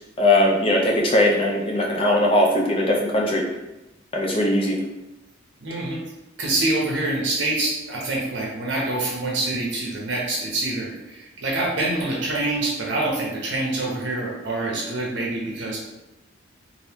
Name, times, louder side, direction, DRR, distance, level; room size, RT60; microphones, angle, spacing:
voice 1, 0.2-3.4 4.1-4.8, left 1 dB, 25° left, -1 dB, 0.5 m, -20 dB
voice 2, 5.6-6.0 6.4-15.8, right 2 dB, 65° right, -3 dB, 0.6 m, -26 dB
2.8 x 2.5 x 3.4 m, 0.97 s
head